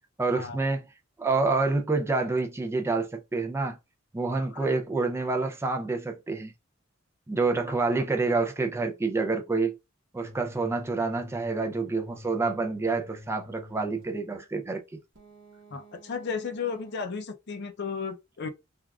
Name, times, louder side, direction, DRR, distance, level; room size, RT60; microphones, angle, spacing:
voice 1, 0.2-0.9 1.2-3.8 4.1-6.5 7.3-9.8 10.1-14.8, right 3 dB, 15° right, 0.4 m, -27 dB
voice 2, 7.7-8.0 15.7-18.5, left 5 dB, 55° left, 0.5 m, -34 dB
sound 1, 10.2-14.2 15.1-17.0, left 1 dB, 60° right, 1.0 m, -48 dB
3.4 x 2.3 x 2.3 m
head